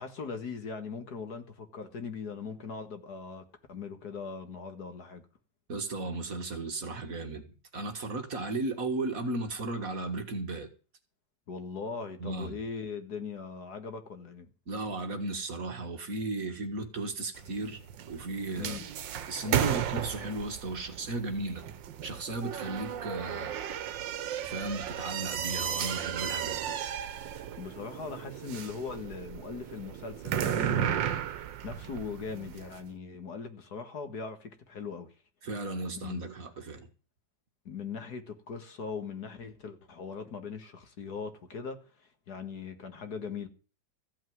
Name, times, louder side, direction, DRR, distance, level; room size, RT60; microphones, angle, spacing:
voice 1, 0.0-5.2 11.5-14.5 18.6-18.9 27.6-35.1 35.9-36.2 37.7-43.5, left 5 dB, 60° left, 2.1 m, -40 dB
voice 2, 5.7-10.7 12.2-12.6 14.7-17.8 18.1-18.8 19.3-21.6 22.0-23.6 24.4-26.7 35.4-36.9, right 2 dB, 50° right, 2.0 m, -35 dB
sound 1, 17.4-32.8, right 9 dB, 80° right, 1.6 m, -34 dB
15.0 x 5.7 x 9.3 m
omnidirectional pair, 2.0 m